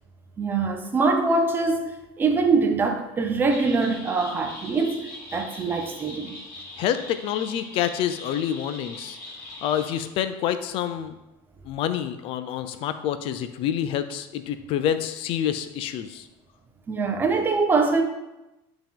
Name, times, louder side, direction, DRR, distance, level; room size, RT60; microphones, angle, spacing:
voice 1, 0.4-6.4 16.9-18.0, right 4 dB, 15° right, 0.5 m, -23 dB
sound 1, 3.5-10.0, left 2 dB, 30° left, 1.8 m, -41 dB
voice 2, 6.8-9.2 9.6-11.1 11.6-16.3, left 10 dB, 45° left, 0.4 m, -27 dB
8.7 x 3.0 x 3.6 m
cardioid pair, 160°, 13 cm